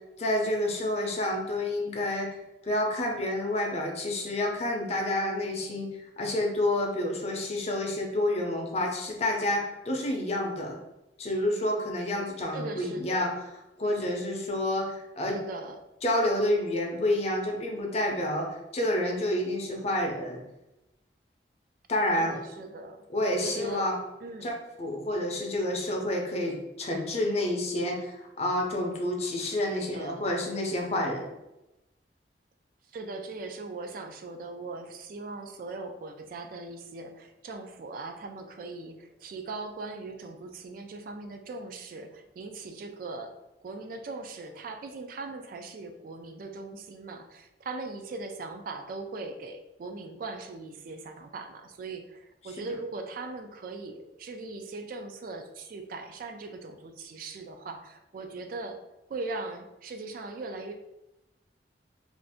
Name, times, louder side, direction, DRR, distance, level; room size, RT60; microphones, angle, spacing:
voice 1, 0.2-2.3 2.6-5.9 6.2-10.8 11.2-13.3 13.8-15.4 16.0-18.5 18.7-20.4 21.9-22.4 23.1-24.0 24.4-24.5 24.8-31.3, left 1 dB, 35° left, 1 dB, 0.5 m, -29 dB
voice 2, 12.5-13.3 15.3-15.8 22.1-23.9 24.2-24.5 29.7-30.2 32.9-43.4 43.6-58.8 59.1-60.7, right 3 dB, 50° right, 6 dB, 0.3 m, -40 dB
2.5 x 2.4 x 3.4 m, 0.94 s
head